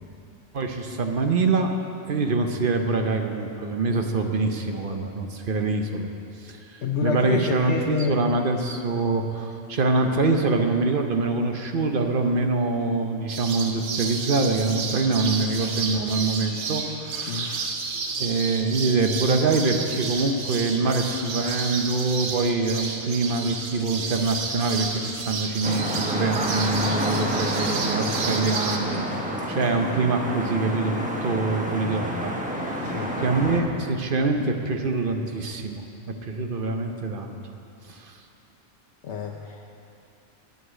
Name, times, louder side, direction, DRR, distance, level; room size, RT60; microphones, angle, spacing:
voice 1, 0.5-1.7 2.1-6.1 6.4-17.8 18.2-29.0 29.5-32.3 33.2-35.8 36.2-37.3 37.9-38.1, right 3 dB, 55° right, 5 dB, 0.9 m, -25 dB
voice 2, 6.8-8.2 17.3-17.5 32.8-33.2 39.0-39.7, left 5 dB, 75° left, 1 dB, 1.0 m, -28 dB
sound 1, 13.3-28.8, right 4 dB, 80° right, 1.2 m, -31 dB
sound 2, 25.6-33.6, equal, 5° right, 1.1 m, -29 dB
8.1 x 8.0 x 8.8 m, 2.6 s
omnidirectional pair, 1.2 m